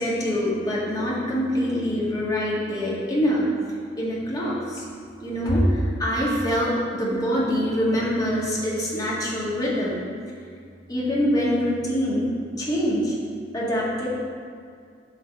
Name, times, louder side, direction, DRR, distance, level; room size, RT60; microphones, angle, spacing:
voice 1, 0.0-4.9 5.2-10.0 10.9-12.3 12.6-13.2 13.5-14.1, equal, 20° left, -6 dB, 1.9 m, -24 dB
9.1 x 4.0 x 6.6 m, 2.3 s
head